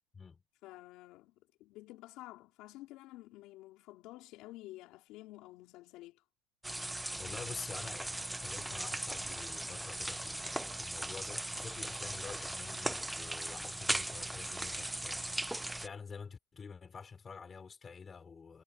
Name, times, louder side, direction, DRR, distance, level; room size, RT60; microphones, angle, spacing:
voice 1, 0.6-6.2, left 17 dB, 65° left, 3.3 m, -51 dB
sound 1, 6.6-15.9, right 1 dB, 5° right, 0.6 m, -38 dB
voice 2, 7.2-18.6, left 5 dB, 25° left, 4.6 m, -48 dB
supercardioid pair, 115°, 0 cm